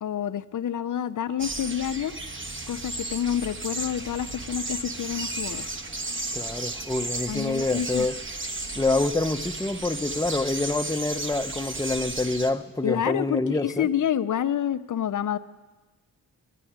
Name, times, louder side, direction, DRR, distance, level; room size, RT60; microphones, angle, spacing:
voice 1, 0.0-2.1 2.7-5.7 7.3-8.1 12.8-15.4, left 10 dB, 55° left, 0.6 m, -28 dB
sound 1, 1.4-12.5, right 2 dB, 35° right, 1.3 m, -34 dB
voice 2, 6.3-8.1 8.8-13.9, left 2 dB, 10° left, 0.7 m, -27 dB
12.5 x 9.1 x 10.0 m
cardioid pair, 60°, 36 cm